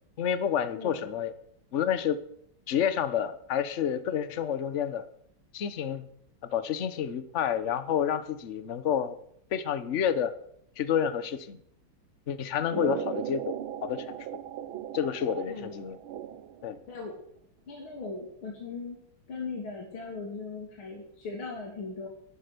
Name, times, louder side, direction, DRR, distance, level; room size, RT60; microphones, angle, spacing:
voice 1, 0.2-1.3 1.7-2.2 2.7-5.0 5.5-6.1 6.5-9.2 9.5-10.3 10.8-11.6 12.3-13.5 13.8-14.2 14.9-16.0 16.6-16.8, left 8 dB, 45° left, 13 dB, 1.0 m, -29 dB
voice 2, 0.7-1.1 12.7-13.1 15.5-15.9 16.9-17.1 17.7-19.0 19.3-22.1, left 4 dB, 75° left, -2 dB, 3.7 m, -39 dB
sound 1, 12.7-16.7, right 10 dB, 75° right, 1.7 m, -37 dB
14.0 x 11.5 x 6.8 m, 0.69 s
omnidirectional pair, 2.3 m